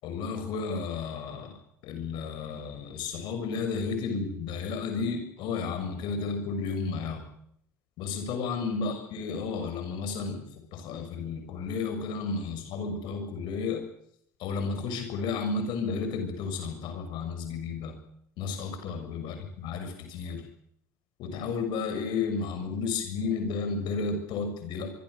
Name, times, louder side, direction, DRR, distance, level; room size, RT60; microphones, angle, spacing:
voice 1, 0.0-1.5 1.8-7.2 8.0-13.8 14.4-18.0 18.4-20.5 21.2-24.9, left 4 dB, 65° left, 6 dB, 6.8 m, -32 dB
25.5 x 24.0 x 6.8 m, 0.71 s
hypercardioid pair, 60°, 9 cm